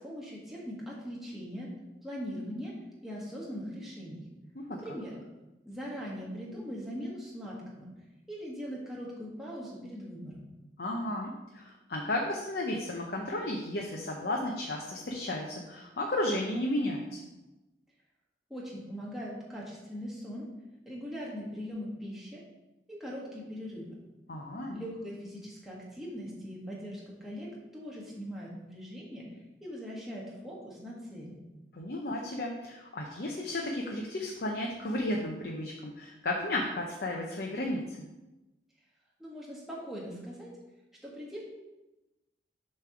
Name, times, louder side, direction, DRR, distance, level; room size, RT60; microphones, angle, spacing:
voice 1, 0.0-1.7 2.0-2.7 3.0-4.2 4.8-5.2 5.6-7.9 8.3-10.5 18.5-20.4 20.8-22.4 22.9-24.0 24.7-27.5 27.7-29.2 29.6-31.4 39.2-40.5 41.0-41.4, equal, ahead, -5 dB, 1.5 m, -40 dB
voice 2, 10.8-17.2 24.3-24.8 31.7-38.0, left 1 dB, 60° left, 0 dB, 0.7 m, -33 dB
6.9 x 3.3 x 5.8 m, 1.0 s
head